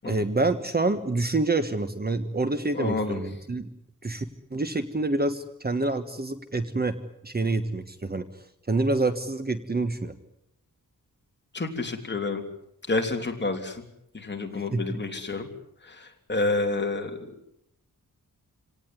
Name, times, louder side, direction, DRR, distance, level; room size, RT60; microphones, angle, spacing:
voice 1, 0.1-3.7 4.0-4.2 4.5-7.0 7.2-8.3 8.7-10.1 14.7-14.8, right 2 dB, 25° right, 9 dB, 1.4 m, -27 dB
voice 2, 2.7-3.2 11.5-12.4 12.9-13.8 14.1-15.5 15.9-17.2, left 3 dB, 30° left, 3 dB, 3.3 m, -29 dB
27.0 x 18.5 x 9.7 m, 0.79 s
wide cardioid pair, 165°, 35 cm